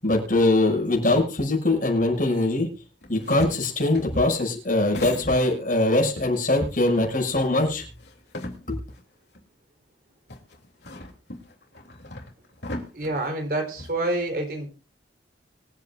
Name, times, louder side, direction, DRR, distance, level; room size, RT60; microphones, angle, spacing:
voice 1, 0.0-2.7 3.1-7.8 8.7-8.8, left 2 dB, 50° left, 1 dB, 6.3 m, -22 dB
sound 1, 3.0-5.8 6.2-9.0 9.3-9.4 10.3-13.9, left 1 dB, 75° left, 3.1 m, -39 dB
voice 2, 12.9-14.7, right 2 dB, 55° right, 5 dB, 4.1 m, -27 dB
25.0 x 8.6 x 2.5 m, 0.34 s
head